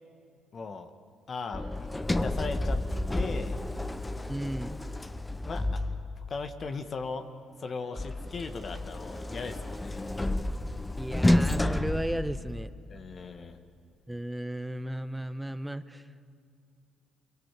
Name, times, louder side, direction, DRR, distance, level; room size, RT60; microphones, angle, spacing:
voice 1, 0.5-0.9 1.3-2.8 3.1-3.6 5.5-5.8 6.2-7.2 7.6-10.0 12.9-13.6, left 4 dB, 45° left, 7 dB, 1.7 m, -38 dB
Sliding door, 1.5-6.4 8.0-12.9, left 1 dB, 15° left, 1.1 m, -30 dB
voice 2, 4.3-4.8 11.0-12.7 14.1-16.1, right 1 dB, 10° right, 13 dB, 1.1 m, -35 dB
29.5 x 23.0 x 7.6 m, 2.4 s
hypercardioid pair, 55°, 0 cm